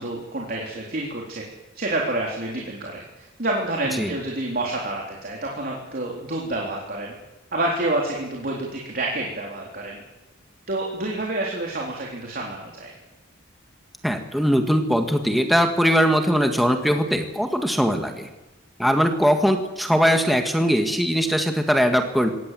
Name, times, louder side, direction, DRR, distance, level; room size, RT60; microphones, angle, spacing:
voice 1, 0.0-1.4 1.7-7.1 7.5-10.0 10.7-12.9, right 2 dB, 50° right, -1 dB, 3.9 m, -28 dB
voice 2, 14.0-18.3 18.8-22.3, equal, ahead, 4 dB, 1.8 m, -20 dB
25.0 x 18.0 x 7.7 m, 1.0 s
head